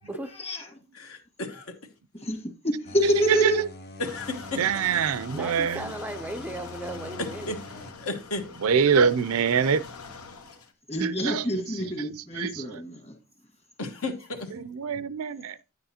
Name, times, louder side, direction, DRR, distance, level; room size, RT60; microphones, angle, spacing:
voice 1, 0.0-0.7 2.1-3.6 10.9-13.2, equal, 30° left, 1.5 m, -28 dB
voice 2, 0.9-1.7 4.0-4.6 7.2-7.6 8.0-8.5 13.8-14.5, left 2 dB, 70° left, 1.3 m, -33 dB
sound 1, 2.9-7.9, left 1 dB, 50° left, 0.9 m, -44 dB
sound 2, 4.0-10.7, left 4 dB, 90° left, 1.1 m, -44 dB
voice 3, 4.6-5.9 8.6-9.8 11.0-11.4 12.0-12.1 12.4-12.6 14.6-15.6, right 6 dB, 70° right, 0.4 m, -24 dB
voice 4, 5.3-7.5, right 1 dB, 5° right, 0.4 m, -36 dB
9.6 x 7.9 x 2.8 m
head